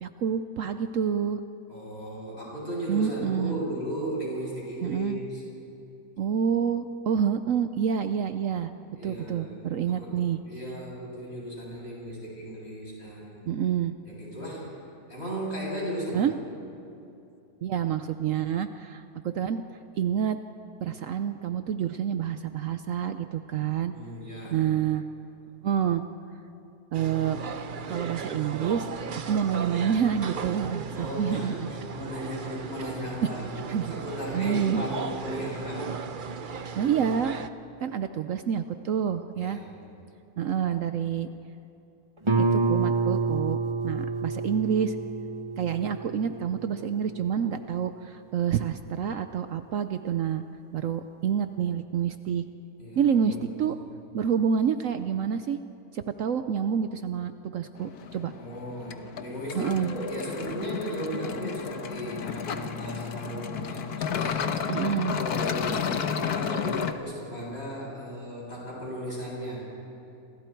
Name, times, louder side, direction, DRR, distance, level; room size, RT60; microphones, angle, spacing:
voice 1, 0.0-1.4 2.9-3.6 4.8-5.2 6.2-8.7 9.0-10.4 13.5-13.9 16.1-16.3 17.6-19.6 20.0-20.4 20.8-23.9 24.5-25.0 25.6-26.0 26.9-27.4 27.9-28.9 29.2-31.7 33.2-33.3 33.7-33.9 34.3-34.8 36.7-37.4 37.8-39.6 40.4-41.3 42.4-43.6 43.8-45.0 45.6-50.4 50.7-52.4 53.0-53.8 54.1-55.6 55.9-58.3 59.6-59.9 64.7-65.2, right 8 dB, 65° right, 9 dB, 1.0 m, -28 dB
voice 2, 1.7-5.4 8.9-13.4 14.0-14.7 15.1-16.3 23.9-24.6 30.9-33.5 33.9-35.9 39.4-39.7 52.8-53.6 58.4-64.6 65.1-69.7, equal, 45° left, -5 dB, 8.2 m, -36 dB
sound 1, 26.9-37.5, right 5 dB, 45° right, 0.7 m, -36 dB
Guitar, 42.3-47.7, right 3 dB, 25° right, 0.9 m, -29 dB
sound 2, 57.8-66.9, left 7 dB, 85° left, 1.5 m, -32 dB
29.0 x 26.0 x 4.6 m, 2.7 s
omnidirectional pair, 1.6 m